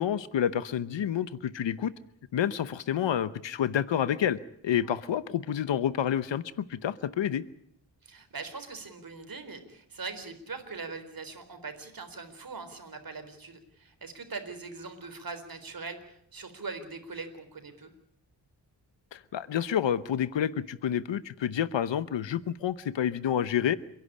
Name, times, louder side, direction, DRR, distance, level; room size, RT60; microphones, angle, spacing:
voice 1, 0.0-1.9 2.3-4.4 4.6-7.4 19.1-23.8, left 9 dB, 80° left, 16 dB, 0.9 m, -29 dB
voice 2, 8.0-17.9, right 4 dB, 50° right, 8 dB, 4.1 m, -41 dB
29.5 x 11.0 x 10.0 m, 0.72 s
cardioid pair, 75°, 44 cm